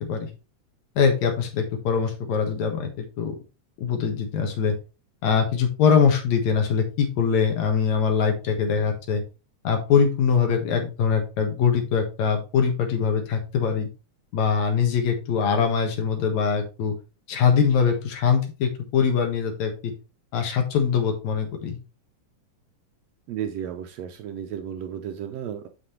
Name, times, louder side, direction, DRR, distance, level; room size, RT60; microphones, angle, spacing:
voice 1, 1.0-3.3 3.8-4.8 5.2-9.2 9.6-13.9 14.3-16.9 17.3-19.9 20.3-21.8, left 6 dB, 70° left, 4 dB, 2.7 m, -22 dB
voice 2, 23.3-25.7, right 9 dB, 75° right, 7 dB, 1.6 m, -33 dB
7.5 x 6.3 x 3.2 m, 0.31 s
omnidirectional pair, 3.5 m